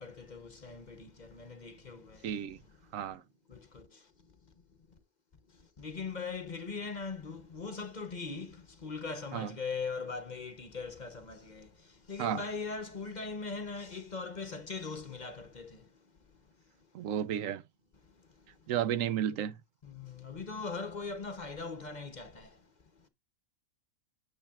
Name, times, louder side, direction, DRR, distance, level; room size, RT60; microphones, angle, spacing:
voice 1, 0.0-2.4 3.5-4.5 4.9-5.0 5.5-16.0 18.0-18.7 19.8-22.7 23.0-23.1, left 4 dB, 40° left, 0.9 m, -41 dB
voice 2, 2.2-2.6 2.9-3.2 9.3-9.5 12.2-12.4 16.9-17.6 18.7-19.6, right 10 dB, 85° right, 1.1 m, -32 dB
8.8 x 8.7 x 2.4 m
omnidirectional pair, 1.3 m